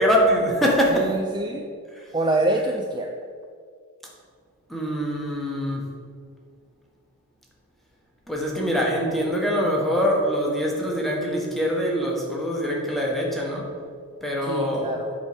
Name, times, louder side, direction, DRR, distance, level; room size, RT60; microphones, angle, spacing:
voice 1, 0.0-1.1 4.7-5.9 8.3-13.7 14.2-14.9, equal, ahead, -3 dB, 1.4 m, -23 dB
voice 2, 0.9-1.7 2.1-3.1 14.5-15.1, right 2 dB, 20° right, 2 dB, 0.4 m, -25 dB
8.8 x 3.9 x 6.8 m, 2.1 s
head